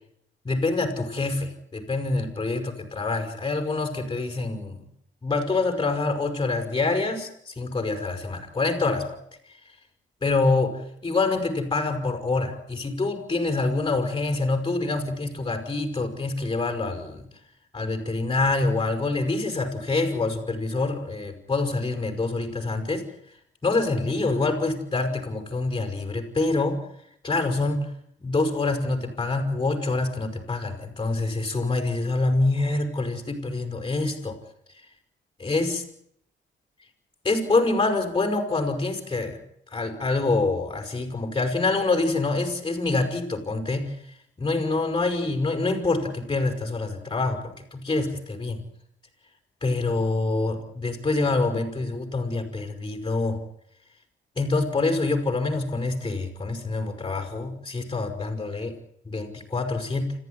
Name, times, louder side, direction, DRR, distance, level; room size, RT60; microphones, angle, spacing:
voice 1, 0.4-4.8 5.2-9.1 10.2-17.3 17.7-23.1 23.6-26.8 27.2-27.9 28.2-34.4 35.4-35.8 37.2-39.4 39.7-43.9 44.4-48.6 49.6-53.4 54.4-58.7 59.0-60.1, left 3 dB, 20° left, 4 dB, 6.2 m, -26 dB
27.5 x 15.0 x 9.9 m, 0.70 s
cardioid pair, 90°, 20 cm